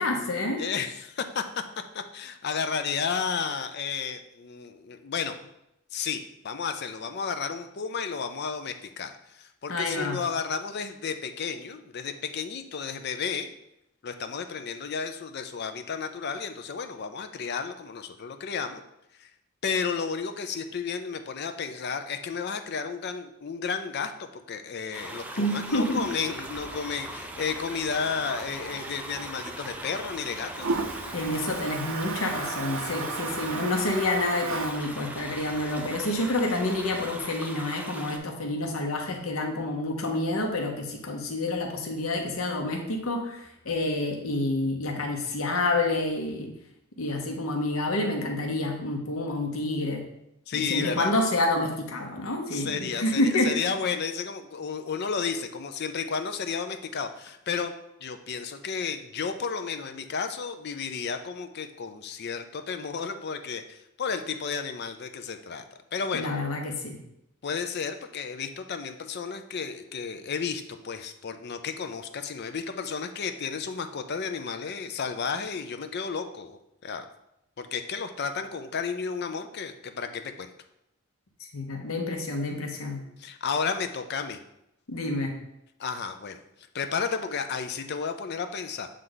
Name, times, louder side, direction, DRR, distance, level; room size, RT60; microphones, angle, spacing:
voice 1, 0.0-0.6 9.7-10.2 25.4-26.0 31.1-46.5 47.0-50.0 50.5-53.5 66.1-67.0 81.5-83.0 84.9-85.3, left 2 dB, 80° left, 3 dB, 0.9 m, -28 dB
voice 2, 0.6-1.4 1.9-5.3 5.9-13.5 14.0-18.8 19.2-19.3 19.6-30.7 33.4-33.5 50.5-51.1 52.5-57.7 58.0-65.6 65.9-66.3 67.4-77.1 77.6-80.5 83.2-84.4 85.8-86.4 86.7-88.9, left 5 dB, 50° left, 8 dB, 0.5 m, -32 dB
sound 1, 24.9-38.2, right 1 dB, 5° right, 0.4 m, -40 dB
Toilet flush, 25.6-37.2, right 4 dB, 65° right, 0.7 m, -38 dB
7.4 x 3.3 x 3.9 m, 0.83 s
head